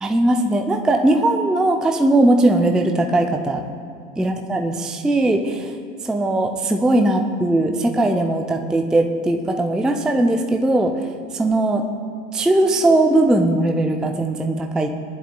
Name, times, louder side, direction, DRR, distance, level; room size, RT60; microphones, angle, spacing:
voice 1, 0.0-3.6 4.2-5.7 6.0-10.9 11.3-11.8 12.3-14.9, right 2 dB, ahead, 4 dB, 0.4 m, -19 dB
18.5 x 11.0 x 2.3 m, 2.2 s
figure-of-eight pair, 80°, 41 cm